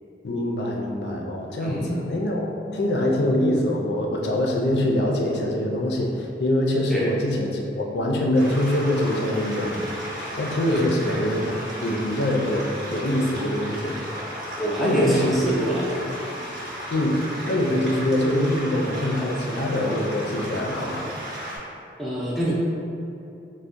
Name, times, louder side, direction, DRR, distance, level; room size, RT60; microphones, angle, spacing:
voice 1, 0.2-9.9 10.3-11.5 11.8-14.0 14.8-15.3 15.9-16.0 16.9-21.0, left 1 dB, 80° left, 0 dB, 0.4 m, -24 dB
voice 2, 1.6-2.0 6.9-7.0 10.7-10.8 14.6-15.8 22.0-22.5, right 1 dB, ahead, -8 dB, 0.5 m, -25 dB
sound 1, 8.3-21.6, equal, 80° right, 0.9 m, -35 dB
4.3 x 2.1 x 2.5 m, 2.7 s
head